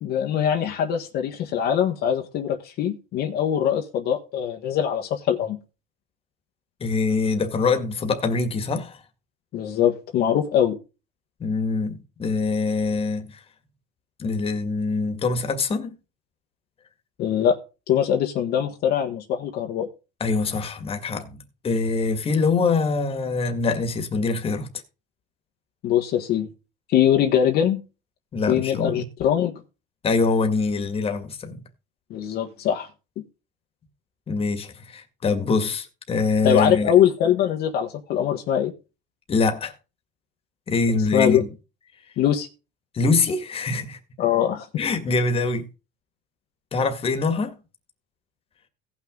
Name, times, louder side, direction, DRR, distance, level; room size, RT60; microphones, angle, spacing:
voice 1, 0.0-5.6 9.5-10.8 17.2-17.6 17.9-19.9 25.8-26.5 26.9-27.8 28.5-29.6 32.1-32.9 36.4-38.7 41.1-41.4 42.2-42.5 44.2-44.7, left 9 dB, 55° left, 1.5 m, -22 dB
voice 2, 6.8-9.0 11.4-13.4 14.2-16.0 20.2-21.4 21.6-24.7 28.3-29.1 30.0-31.6 34.3-36.9 39.3-39.7 40.7-41.5 42.9-44.0 44.8-45.7 46.7-47.6, left 4 dB, 30° left, 2.1 m, -24 dB
17.0 x 6.1 x 3.9 m
cardioid pair, 125°, 20 cm